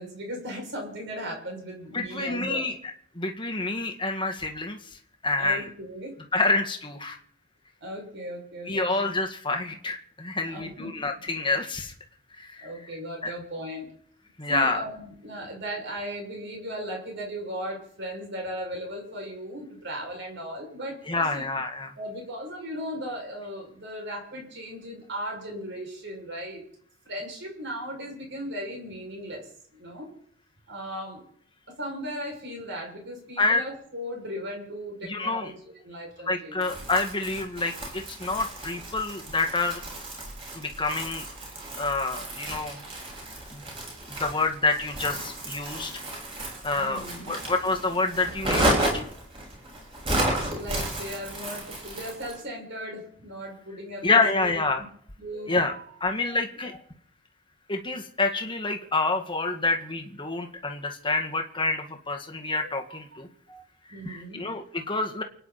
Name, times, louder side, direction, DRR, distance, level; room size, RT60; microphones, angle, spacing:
voice 1, 0.0-2.7 5.4-6.1 7.8-9.0 10.4-10.9 12.6-13.9 14.5-21.5 22.0-26.6 27.0-30.1 30.7-31.2 31.7-36.6 46.7-47.3 50.5-54.5 54.8-54.9 55.2-56.0 56.3-56.4 56.6-56.8 62.7-62.8 63.5-63.6 63.9-64.5, equal, 55° right, 0 dB, 6.6 m, -37 dB
voice 2, 1.9-2.7 3.2-4.8 5.2-5.7 6.3-7.2 8.7-11.9 12.4-12.7 13.2-13.3 14.4-14.8 21.1-21.9 33.4-33.6 35.0-35.5 36.3-39.8 40.5-41.3 41.8-42.8 43.5-43.6 44.1-46.0 46.6-49.0 54.0-54.8 55.5-55.7 56.0-56.7 57.7-63.3 64.1-65.2, left 3 dB, 25° left, 4 dB, 2.0 m, -27 dB
Crumpling crinkling, 36.6-52.4, right 1 dB, 25° right, 6.3 m, -32 dB
29.5 x 10.0 x 4.3 m, 0.62 s
head